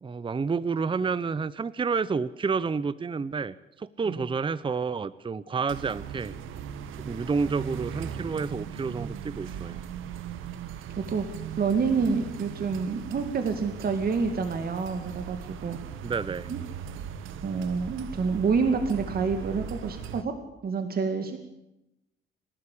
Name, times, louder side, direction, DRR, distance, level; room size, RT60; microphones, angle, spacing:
voice 1, 0.0-6.3 7.1-9.8 16.0-16.5, right 5 dB, 25° right, 18 dB, 0.7 m, -29 dB
sound 1, 5.7-20.2, right 8 dB, 90° right, 1.4 m, -39 dB
voice 2, 11.6-15.8 16.5-16.6 17.4-20.3 20.6-21.4, right 5 dB, 50° right, 7 dB, 2.4 m, -28 dB
28.0 x 12.5 x 8.6 m, 0.89 s
cardioid pair, 90°, 20 cm